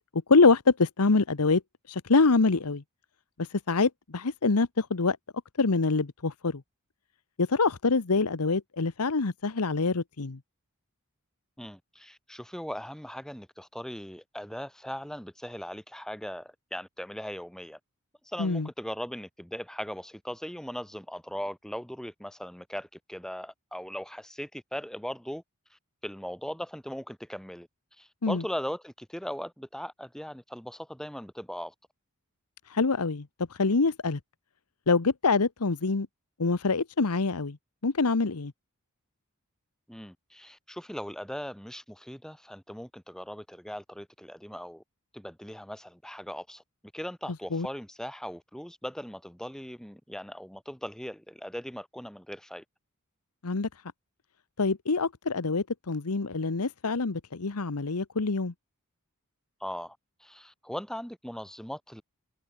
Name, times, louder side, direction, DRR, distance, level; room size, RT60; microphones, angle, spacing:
voice 1, 0.1-1.6 1.9-2.8 3.4-5.2 5.6-6.6 7.4-10.4 18.4-18.7 28.2-28.4 32.7-34.2 34.9-36.1 36.4-37.6 37.8-38.5 47.5-47.7 53.4-53.7 54.6-58.5, left 4 dB, 85° left, 1.0 m, -25 dB
voice 2, 11.6-17.8 18.2-25.4 25.7-27.7 28.0-31.7 39.9-44.8 45.1-46.6 46.9-52.6 59.6-62.0, equal, ahead, 1.6 m, -39 dB
head